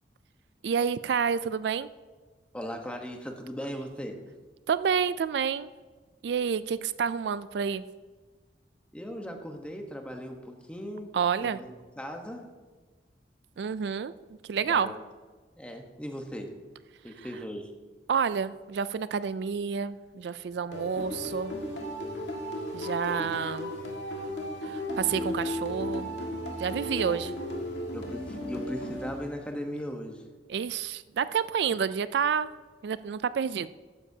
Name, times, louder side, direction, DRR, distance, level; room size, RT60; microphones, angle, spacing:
voice 1, 0.6-1.9 4.7-5.7 6.2-7.8 11.1-11.6 13.6-14.1 14.5-14.9 18.1-21.5 22.7-23.7 24.7-26.1 26.6-27.3 30.5-32.5 32.8-33.7, right 7 dB, 70° right, 15 dB, 0.3 m, -29 dB
voice 2, 2.5-4.2 8.9-11.1 11.4-12.4 14.7-15.0 15.6-16.5 17.0-17.7 23.1-23.4 27.0-27.2 27.9-30.3, equal, 5° left, 3 dB, 1.1 m, -38 dB
sound 1, 20.7-29.6, left 1 dB, 80° left, 1.9 m, -35 dB
13.5 x 9.9 x 2.8 m, 1.4 s
head